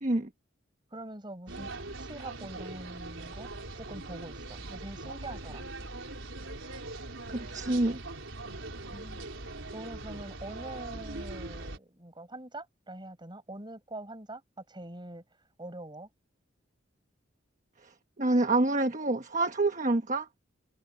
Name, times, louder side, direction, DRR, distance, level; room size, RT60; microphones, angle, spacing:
voice 1, 0.9-3.5 3.7-5.7 8.9-14.4 14.7-15.2 15.6-16.1, right 1 dB, 25° right, 5.7 m, -44 dB
sound 1, 1.5-11.8, right 2 dB, 85° right, 4.4 m, -41 dB
voice 2, 7.3-8.0 17.8-17.9 18.2-20.3, right 2 dB, 40° right, 1.3 m, -27 dB
head